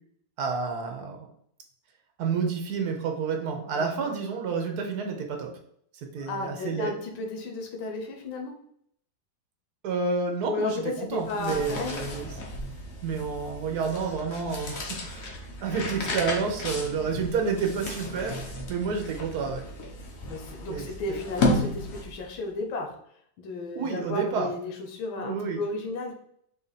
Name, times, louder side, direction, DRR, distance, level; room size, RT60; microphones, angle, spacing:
voice 1, 0.4-1.3 2.2-5.5 5.9-6.9 9.8-12.3 13.0-15.3 15.6-19.6 20.7-21.2 23.7-24.5 25.2-25.6, right 5 dB, 60° right, 3 dB, 1.2 m, -30 dB
voice 2, 3.7-4.1 6.2-8.5 10.4-12.0 20.2-23.0 23.4-26.1, left 3 dB, 85° left, 2 dB, 1.6 m, -34 dB
sound 1, 11.1-22.3, left 1 dB, 55° left, 1.1 m, -33 dB
4.5 x 2.7 x 4.0 m, 0.67 s
omnidirectional pair, 2.1 m